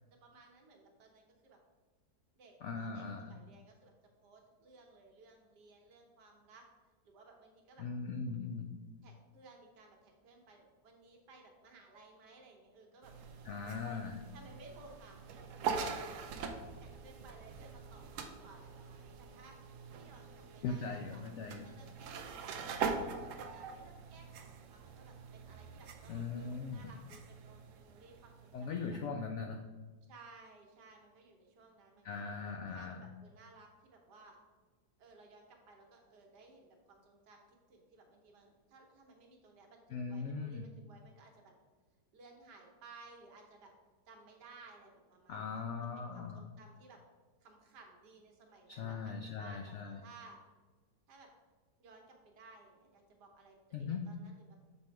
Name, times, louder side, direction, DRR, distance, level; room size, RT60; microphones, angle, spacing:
voice 1, 0.2-1.6 2.3-3.9 4.2-6.6 7.0-7.8 9.0-13.1 13.6-14.0 14.3-16.3 16.8-21.2 21.6-22.6 22.9-29.0 30.1-34.4 35.0-37.4 37.7-41.5 42.1-43.7 44.1-47.0 47.4-50.4 51.1-51.3 51.8-54.6, right 3 dB, 85° right, 2 dB, 1.6 m, -59 dB
voice 2, 2.6-3.4 7.8-8.7 13.4-14.2 20.6-21.7 26.1-26.9 28.5-29.6 32.0-33.1 39.9-40.7 45.3-46.4 48.7-50.0 53.7-54.0, left 5 dB, 80° left, 4 dB, 0.6 m, -40 dB
sound 1, 13.0-29.1, right 5 dB, 65° right, 0.8 m, -43 dB
6.9 x 3.5 x 4.5 m, 1.3 s
omnidirectional pair, 1.8 m